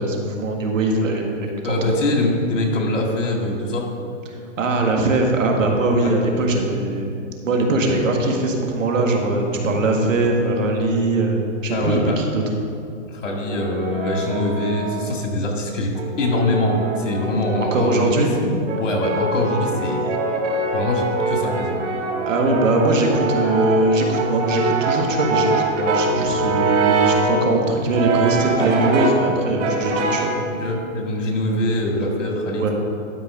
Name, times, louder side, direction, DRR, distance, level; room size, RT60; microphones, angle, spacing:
voice 1, 0.0-1.7 4.6-7.1 7.4-12.4 17.7-18.3 22.3-30.3 32.5-32.7, right 2 dB, 90° right, 1 dB, 1.7 m, -21 dB
voice 2, 1.6-3.9 6.0-6.1 11.7-12.2 13.1-18.5 18.8-20.1 20.7-21.8 30.5-32.6, left 1 dB, 70° left, 1 dB, 2.1 m, -23 dB
Brass instrument, 13.3-15.2 16.0-18.0 18.7-27.3 27.9-29.3 29.6-30.4, right 3 dB, 65° right, 1.5 m, -23 dB
11.5 x 5.0 x 5.1 m, 2.5 s
hypercardioid pair, 155°, 38 cm